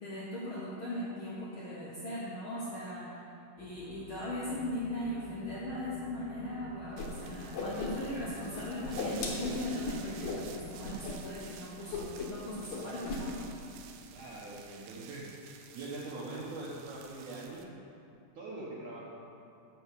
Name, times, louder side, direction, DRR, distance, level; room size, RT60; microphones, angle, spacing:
voice 1, 0.0-3.1 3.6-13.4, left 1 dB, 75° left, -7 dB, 1.2 m, -39 dB
sound 1, 3.6-10.9, left 2 dB, 40° left, 0.9 m, -49 dB
Whoosh swoosh swish, 7.0-7.1 7.4-8.3 8.5-10.4 10.8-11.1 11.4-11.6 11.9-12.4 12.7-13.2, left 3 dB, 60° left, 2.2 m, -37 dB
sound 2, 7.0-17.6, right 7 dB, 90° right, 2.8 m, -52 dB
voice 2, 14.1-15.3 15.7-17.7 18.4-19.1, right 2 dB, 60° right, -6 dB, 2.3 m, -42 dB
9.3 x 7.1 x 6.9 m, 2.7 s
omnidirectional pair, 4.6 m